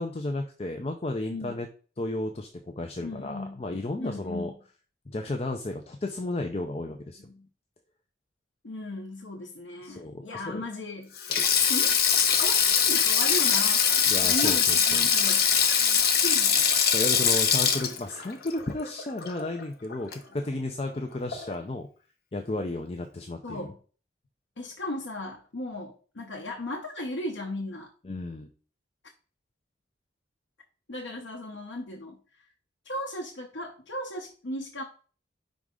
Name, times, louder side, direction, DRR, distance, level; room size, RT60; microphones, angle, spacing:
voice 1, 0.0-1.7 2.0-4.5 5.1-7.2 9.8-10.6 14.1-15.1 16.9-21.9 22.3-23.7 28.0-28.5, left 2 dB, 30° left, 5 dB, 0.5 m, -33 dB
voice 2, 3.0-3.6 4.0-4.5 7.2-7.5 8.6-11.4 11.7-11.9 12.3-13.8 14.2-15.5 16.2-16.6 23.4-23.8 24.6-27.9 30.9-32.4 32.8-34.8, left 1 dB, 80° left, 0 dB, 0.9 m, -36 dB
Sink (filling or washing), 11.2-19.6 19.9-20.1 21.3-21.6, left 7 dB, 55° left, 0.8 m, -23 dB
5.2 x 4.8 x 3.7 m, 0.39 s
head